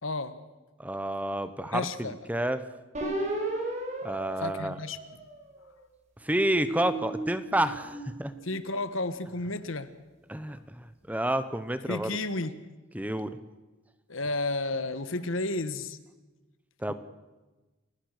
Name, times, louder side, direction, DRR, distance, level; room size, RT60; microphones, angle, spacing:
voice 1, 0.0-0.4 1.7-2.2 4.4-5.0 8.4-9.9 11.9-12.6 14.1-16.0 16.9-17.0, left 2 dB, 80° left, 12 dB, 1.4 m, -32 dB
voice 2, 0.8-2.6 4.0-4.8 6.2-8.3 10.3-12.1 12.9-13.3 16.8-16.9, right 1 dB, 5° right, 12 dB, 0.9 m, -29 dB
sound 1, 2.9-5.6 6.2-8.7, right 1 dB, 35° right, 5.5 m, -36 dB
29.0 x 17.0 x 6.6 m, 1.2 s
head